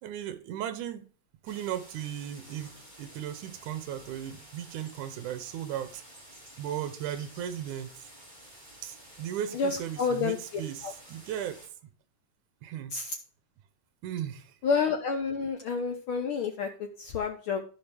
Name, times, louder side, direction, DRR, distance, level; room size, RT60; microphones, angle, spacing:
voice 1, 0.0-1.0 1.4-6.0 6.6-7.9 8.8-11.6 12.6-12.9 14.0-14.5, right 10 dB, 80° right, 2.4 m, -36 dB
sound 1, 1.4-11.7, right 1 dB, 15° right, 3.6 m, -52 dB
voice 2, 9.5-10.4 10.8-10.9 12.9-13.1 14.6-17.6, left 5 dB, 80° left, 1.1 m, -29 dB
14.0 x 5.3 x 3.4 m
omnidirectional pair, 3.5 m